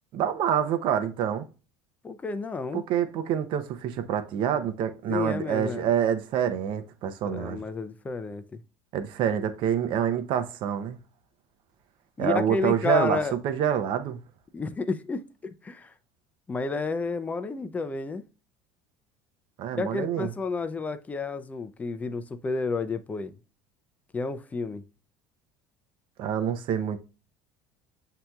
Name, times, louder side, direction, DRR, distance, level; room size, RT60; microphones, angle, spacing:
voice 1, 0.1-1.4 2.7-7.6 8.9-11.0 12.2-14.2 19.6-20.3 26.2-27.0, right 9 dB, 55° right, 0.6 m, -27 dB
voice 2, 2.0-2.9 5.1-5.9 7.2-8.6 12.2-13.4 14.5-15.9 16.5-18.2 19.7-23.3 24.1-24.8, left 4 dB, 15° left, 0.4 m, -31 dB
7.5 x 2.8 x 2.2 m
cardioid pair, 140°, 10 cm